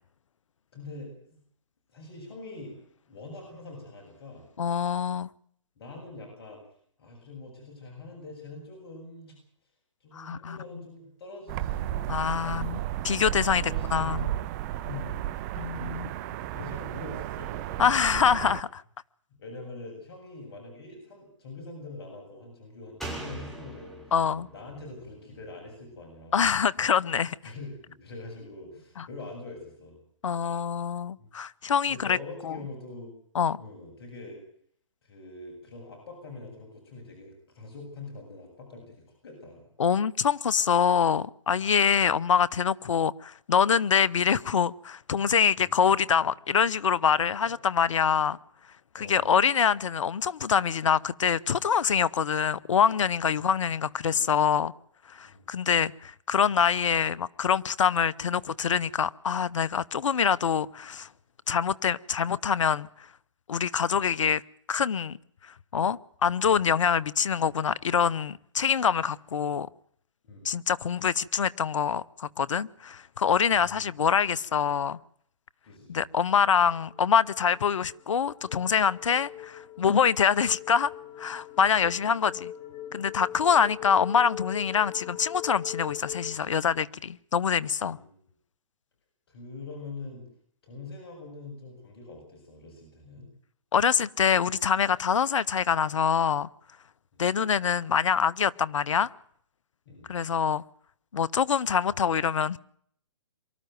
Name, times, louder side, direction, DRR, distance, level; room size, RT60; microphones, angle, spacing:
voice 1, 0.7-1.4 1.9-2.8 3.0-4.4 5.8-6.6 7.0-9.4 10.0-12.7 13.5-14.5 14.8-15.4 16.5-17.8 19.4-24.0 24.5-26.4 27.4-30.0 31.2-31.3 31.9-33.1 33.6-34.4 35.0-39.0 39.2-39.7 45.6-45.7 47.4-47.5 48.9-49.3 53.4-53.5 55.2-55.5 70.2-70.6 73.5-73.8 75.6-76.0 83.3-83.8 87.9-88.1 89.3-90.3 90.6-93.3 97.1-97.3 99.9-100.1, left 3 dB, 50° left, 7.8 m, -44 dB
voice 2, 4.6-5.3 10.1-10.6 12.1-12.8 13.0-13.6 13.9-14.3 15.6-16.1 17.8-18.8 24.1-24.5 26.3-27.4 29.0-29.1 30.2-32.2 32.4-32.6 33.3-33.6 39.8-48.4 48.9-54.7 55.1-61.1 61.5-62.9 63.5-64.4 64.7-65.2 65.4-69.7 70.4-75.0 75.9-80.9 81.2-82.5 82.9-88.0 93.7-96.5 97.2-99.1 100.1-100.6 101.1-102.6, left 7 dB, 75° left, 0.8 m, -25 dB
sound 1, 11.5-18.6, right 13 dB, 35° right, 1.0 m, -33 dB
Slam, 23.0-26.5 26.8-26.9, right 1 dB, ahead, 6.2 m, -42 dB
sound 2, 76.9-86.4, left 12 dB, 30° left, 2.7 m, -42 dB
24.0 x 13.0 x 9.2 m
hypercardioid pair, 135°, 16 cm